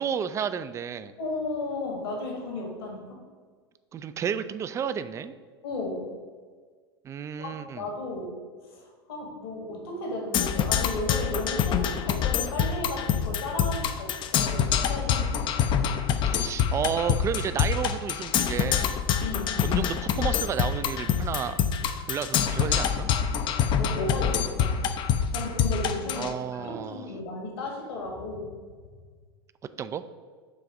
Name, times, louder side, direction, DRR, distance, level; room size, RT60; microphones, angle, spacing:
voice 1, 0.0-1.1 3.9-5.3 7.0-7.9 16.3-19.0 19.6-21.6 22.1-23.1 26.2-27.1 29.8-30.0, right 8 dB, 20° right, 12 dB, 0.3 m, -31 dB
voice 2, 1.2-3.2 5.6-6.1 7.4-8.4 8.7-15.3 19.2-19.6 23.7-24.8 25.3-28.5, left 2 dB, 70° left, 0 dB, 1.7 m, -34 dB
Percussion, 10.3-26.3, left 8 dB, 35° left, 0.5 m, -26 dB
7.1 x 3.3 x 5.0 m, 1.5 s
hypercardioid pair, 90°, 14 cm